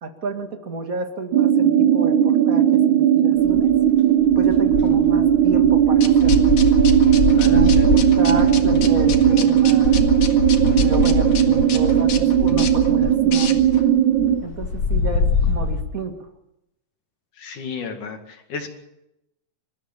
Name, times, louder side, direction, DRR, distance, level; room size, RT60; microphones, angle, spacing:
voice 1, 0.0-3.8 4.4-6.4 7.4-7.8 8.1-10.0 10.8-13.5 14.4-16.1, right 3 dB, 30° right, 6 dB, 1.8 m, -30 dB
sound 1, 1.3-14.4, right 10 dB, 70° right, 2.4 m, -17 dB
sound 2, 3.4-3.9 4.2-15.8, left 4 dB, 45° left, 3.2 m, -25 dB
sound 3, 6.0-13.9, left 7 dB, 85° left, 3.6 m, -33 dB
voice 2, 7.4-8.0 17.4-18.7, left 5 dB, 70° left, 5 dB, 3.6 m, -33 dB
27.5 x 14.5 x 7.4 m, 0.86 s
omnidirectional pair, 3.8 m